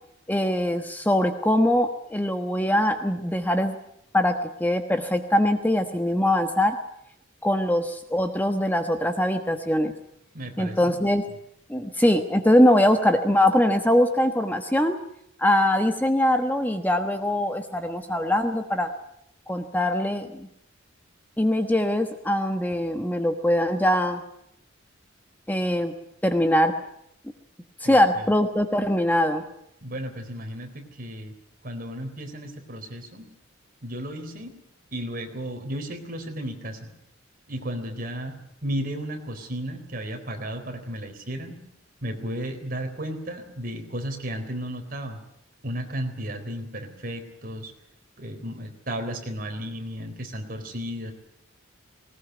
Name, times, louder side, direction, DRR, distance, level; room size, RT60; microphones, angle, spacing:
voice 1, 0.3-3.8 4.1-4.3 4.6-6.8 7.4-9.9 10.6-11.2 11.7-15.0 15.4-18.9 19.5-20.5 21.4-24.2 25.5-25.9 26.2-26.7 27.8-29.4, left 1 dB, 10° left, 6 dB, 1.2 m, -22 dB
voice 2, 10.3-10.9 27.8-28.3 29.8-31.3 31.6-33.2 33.8-34.6 34.9-36.9 37.5-41.6 42.0-45.2 45.6-47.7 48.2-51.1, equal, 45° right, 5 dB, 3.9 m, -34 dB
20.0 x 19.0 x 9.3 m, 0.76 s
head